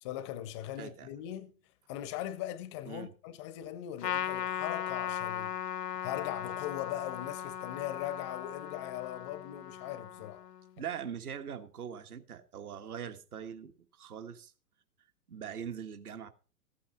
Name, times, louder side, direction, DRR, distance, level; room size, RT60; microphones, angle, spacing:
voice 1, 0.0-1.5 1.9-5.5 6.0-10.4, left 12 dB, 20° left, 0.5 m, -40 dB
voice 2, 0.8-1.1 2.9-3.1 5.9-6.0 10.8-14.5 15.3-16.3, right 8 dB, 65° right, 1.7 m, -42 dB
Trumpet, 4.0-10.7, left 10 dB, 80° left, 0.6 m, -38 dB
14.5 x 8.7 x 4.1 m
figure-of-eight pair, 110°, 48 cm